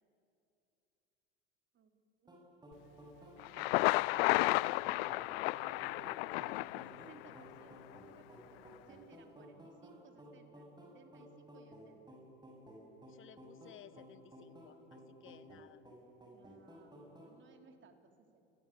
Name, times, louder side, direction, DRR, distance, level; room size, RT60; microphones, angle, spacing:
voice 1, 2.2-4.3 5.6-12.2 16.3-18.5, right 5 dB, 35° right, 6 dB, 3.8 m, -62 dB
sound 1, 2.3-17.4, equal, 15° right, 7.3 m, -55 dB
Thunder, 3.4-7.4, left 22 dB, 65° left, 0.5 m, -32 dB
voice 2, 13.1-15.8, left 11 dB, 40° left, 16 dB, 1.0 m, -58 dB
29.0 x 21.0 x 8.7 m, 2.7 s
hypercardioid pair, 85°, 32 cm